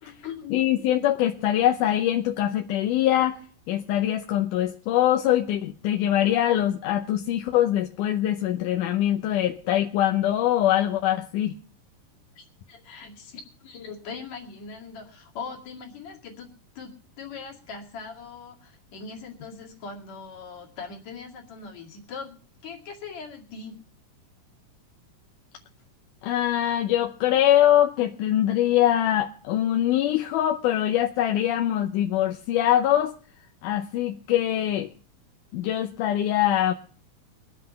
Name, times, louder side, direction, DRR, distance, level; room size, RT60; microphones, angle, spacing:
voice 1, 0.0-0.7 12.4-22.4 22.6-23.8, left 5 dB, 60° left, 3.4 m, -41 dB
voice 2, 0.5-3.4 3.7-11.5 26.2-33.2 33.6-34.9 35.5-36.7, left 12 dB, 80° left, 2.3 m, -23 dB
22.5 x 7.6 x 5.5 m
omnidirectional pair, 3.7 m